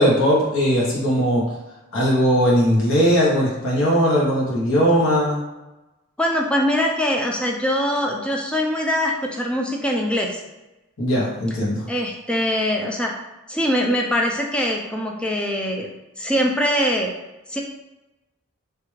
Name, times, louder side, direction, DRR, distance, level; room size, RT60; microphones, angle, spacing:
voice 1, 0.0-1.4 1.9-5.4 11.0-11.9, equal, 70° left, -5 dB, 0.9 m, -19 dB
voice 2, 6.2-10.4 11.9-13.1 13.5-15.9 16.2-17.1 17.5-17.6, equal, 5° left, 0 dB, 0.3 m, -22 dB
3.3 x 2.4 x 3.1 m, 1.0 s
head